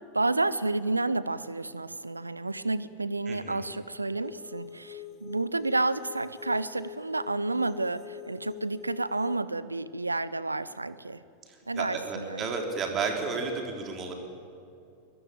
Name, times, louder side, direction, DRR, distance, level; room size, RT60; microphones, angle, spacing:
voice 1, 0.1-11.2 11.7-12.5, right 2 dB, 80° right, 17 dB, 0.6 m, -30 dB
voice 2, 3.3-3.6 11.5-14.1, right 4 dB, 30° right, 3 dB, 3.6 m, -32 dB
sound 1, 4.2-9.4, left 10 dB, 35° left, 1.1 m, -45 dB
23.0 x 21.5 x 9.1 m, 2.6 s
figure-of-eight pair, 90°, 0 cm